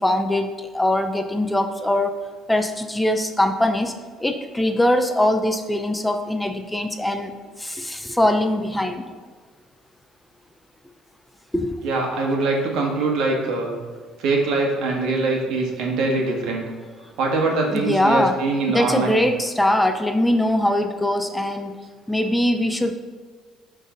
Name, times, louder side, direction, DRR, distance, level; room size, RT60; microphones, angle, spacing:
voice 1, 0.0-2.2 2.5-3.9 4.2-7.3 7.6-9.1 11.5-11.8 17.7-18.4 18.7-21.8 22.1-22.9, left 1 dB, 10° left, 6 dB, 0.6 m, -22 dB
voice 2, 11.8-13.8 14.2-16.7 17.2-19.2, right 3 dB, 70° right, 0 dB, 1.7 m, -23 dB
11.5 x 4.0 x 3.9 m, 1.5 s
supercardioid pair, 80°, 0 cm